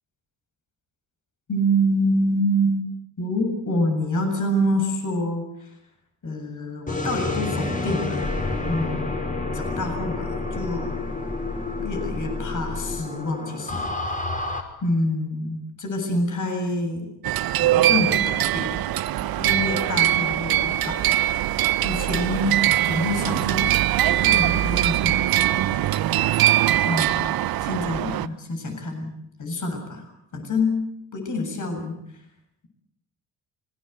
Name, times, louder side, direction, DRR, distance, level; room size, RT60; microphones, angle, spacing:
voice 1, 1.5-2.8 3.2-5.7 6.2-8.4 8.6-9.1 9.5-11.0 11.8-14.2 14.8-17.1 17.6-18.7 19.4-21.2 21.8-23.8 24.2-25.8 26.8-27.3 27.6-29.1 29.4-30.8 31.1-31.9, equal, 45° left, 4 dB, 7.7 m, -27 dB
sound 1, 6.9-14.6, left 2 dB, 20° left, 5.5 m, -29 dB
sound 2, 17.2-28.3, right 13 dB, 55° right, 1.0 m, -22 dB
26.0 x 20.0 x 8.2 m, 0.77 s
hypercardioid pair, 60°, 42 cm